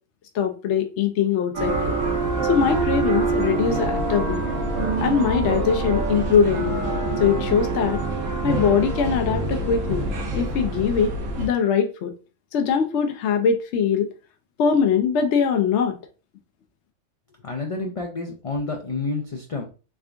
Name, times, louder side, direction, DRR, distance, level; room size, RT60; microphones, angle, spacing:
voice 1, 0.3-1.9 2.4-4.4 5.0-6.8 7.2-8.0 8.4-10.1 10.3-12.1 12.5-14.1 14.6-16.0, left 7 dB, 70° left, 6 dB, 0.8 m, -22 dB
sound 1, 1.5-11.5, right 3 dB, 85° right, 1.2 m, -25 dB
voice 2, 17.4-19.7, left 3 dB, 50° left, 2 dB, 0.4 m, -29 dB
3.5 x 3.4 x 2.5 m, 0.34 s
omnidirectional pair, 1.3 m